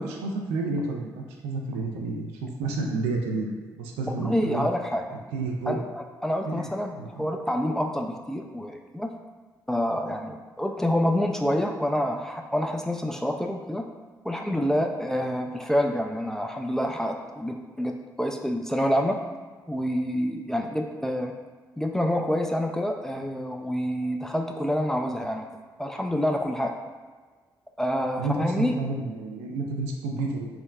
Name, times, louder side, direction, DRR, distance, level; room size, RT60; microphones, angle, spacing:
voice 1, 0.0-4.7 5.3-5.8 6.5-6.7 6.9-7.3 28.2-30.5, right 3 dB, 80° right, 1 dB, 0.4 m, -30 dB
voice 2, 4.1-5.1 5.7-9.1 9.7-13.9 14.2-19.2 19.7-21.3 21.8-25.5 25.8-26.8 27.8-28.8, equal, 5° left, 2 dB, 0.3 m, -27 dB
3.4 x 2.1 x 2.3 m, 1.4 s
hypercardioid pair, 45°, 10 cm